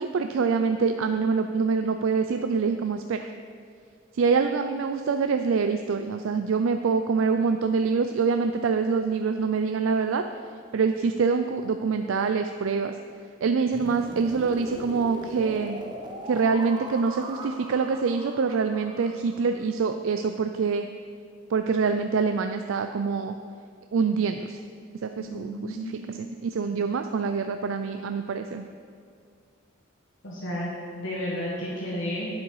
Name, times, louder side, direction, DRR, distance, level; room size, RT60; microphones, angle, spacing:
voice 1, 0.0-3.3 4.1-10.2 10.7-12.9 13.4-15.8 16.3-20.9 21.5-23.3 23.9-24.6 25.0-28.6, right 5 dB, 80° right, 7 dB, 0.4 m, -25 dB
sound 1, 13.7-19.7, right 1 dB, 20° right, 0.8 m, -40 dB
voice 2, 25.2-26.2 30.2-32.3, equal, 70° left, -6 dB, 1.7 m, -32 dB
9.7 x 7.6 x 4.8 m, 2.2 s
head